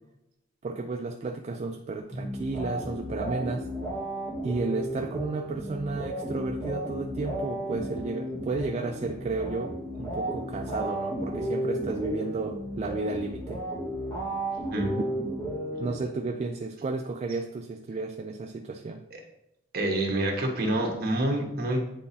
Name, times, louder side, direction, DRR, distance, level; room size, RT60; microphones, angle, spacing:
voice 1, 0.6-3.7 4.4-13.6 15.8-19.0, right 3 dB, 35° right, 4 dB, 0.3 m, -32 dB
sound 1, 2.1-16.4, right 1 dB, 20° left, 1.6 m, -34 dB
voice 2, 19.7-21.8, right 1 dB, 55° right, 1 dB, 1.2 m, -27 dB
8.8 x 4.1 x 2.7 m, 0.87 s
head